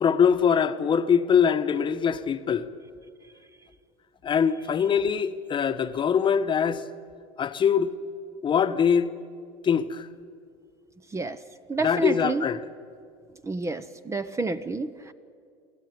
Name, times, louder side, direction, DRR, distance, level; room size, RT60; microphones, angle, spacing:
voice 1, 0.0-2.7 4.2-6.8 7.4-7.9 8.4-9.1 9.6-10.1 11.8-12.6, left 7 dB, 30° left, 9 dB, 1.1 m, -23 dB
voice 2, 11.1-11.4 11.7-12.5 13.4-15.1, right 3 dB, 20° right, 12 dB, 0.9 m, -29 dB
24.0 x 15.0 x 9.5 m, 2.2 s
supercardioid pair, 105°, 15 cm